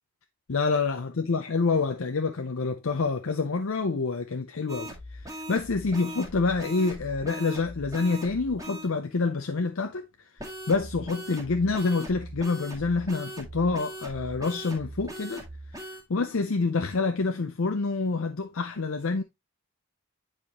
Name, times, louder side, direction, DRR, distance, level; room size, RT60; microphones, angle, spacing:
voice 1, 0.5-10.1 10.7-15.4 15.8-19.2, left 4 dB, 65° left, 0.6 m, -27 dB
sound 1, 4.7-8.9 10.4-16.0, equal, 15° right, 1.8 m, -40 dB
8.6 x 5.1 x 3.0 m
head